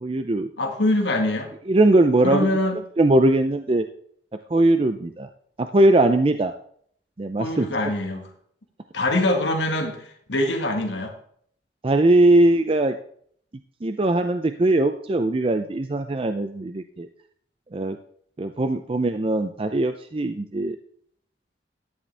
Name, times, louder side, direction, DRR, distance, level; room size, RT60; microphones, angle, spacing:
voice 1, 0.0-0.5 1.7-2.5 3.0-3.9 4.5-5.3 5.6-6.5 7.2-7.7 11.8-13.0 13.8-17.1 17.7-18.0 18.4-20.8, right 2 dB, 30° right, 8 dB, 0.5 m, -20 dB
voice 2, 0.6-1.5 2.2-2.8 7.4-8.3 8.9-10.0 10.3-11.1, left 1 dB, 90° left, 2 dB, 1.8 m, -23 dB
13.0 x 10.0 x 3.4 m, 0.62 s
head